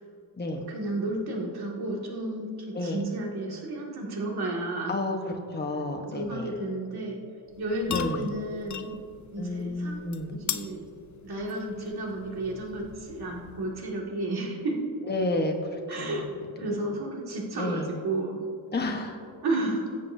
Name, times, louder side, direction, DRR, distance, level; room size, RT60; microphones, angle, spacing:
voice 1, 0.7-4.9 6.1-7.2 7.6-9.0 9.3-10.8 11.2-14.8 15.9-16.3 16.6-18.4 19.4-20.0, right 2 dB, 60° right, -2 dB, 2.2 m, -32 dB
voice 2, 4.9-6.5 7.9-8.3 9.4-10.4 15.1-16.3 16.6-16.7 17.6-17.9 18.7-19.2, left 2 dB, 25° left, 2 dB, 1.1 m, -31 dB
sound 1, 7.5-13.9, left 8 dB, 45° left, 0.6 m, -40 dB
21.0 x 8.2 x 2.7 m, 2.5 s
cardioid pair, 105°, 43 cm